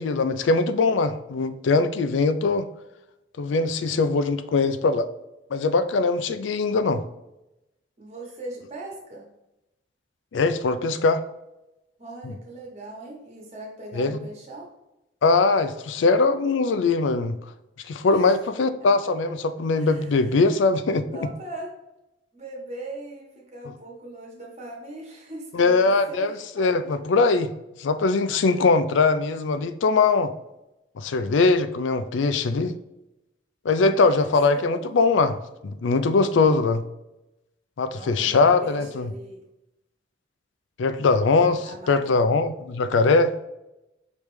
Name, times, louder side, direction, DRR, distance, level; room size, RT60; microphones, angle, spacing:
voice 1, 0.0-2.7 3.4-5.1 5.5-7.0 10.3-11.2 13.9-14.2 15.2-17.4 17.9-21.1 25.5-27.5 27.8-30.3 31.0-32.8 33.6-35.4 35.6-36.8 37.8-39.1 40.8-43.3, left 3 dB, 80° left, 11 dB, 0.4 m, -21 dB
voice 2, 8.0-9.2 12.0-14.7 18.1-19.1 19.8-20.5 21.1-21.7 22.3-27.2 28.3-28.6 33.7-34.9 36.3-36.4 37.9-39.4 41.6-42.0, right 2 dB, 35° right, -2 dB, 1.2 m, -40 dB
5.1 x 3.2 x 3.1 m, 0.92 s
head